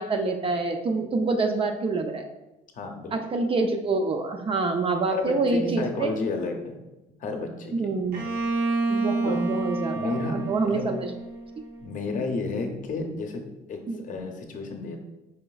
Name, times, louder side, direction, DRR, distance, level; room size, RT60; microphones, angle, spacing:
voice 1, 0.0-2.2 3.1-6.1 7.7-8.2 8.9-11.1 13.9-14.0, right 3 dB, 35° right, 5 dB, 0.4 m, -26 dB
voice 2, 2.7-3.1 5.1-6.7 7.2-7.9 9.2-9.4 9.9-10.8 11.8-13.4 13.7-13.8 14.0-15.0, left 3 dB, 50° left, 4 dB, 0.6 m, -31 dB
Bowed string instrument, 8.1-11.9, right 3 dB, 60° right, 0.7 m, -29 dB
4.9 x 3.0 x 2.3 m, 1.0 s
cardioid pair, 110°, 17 cm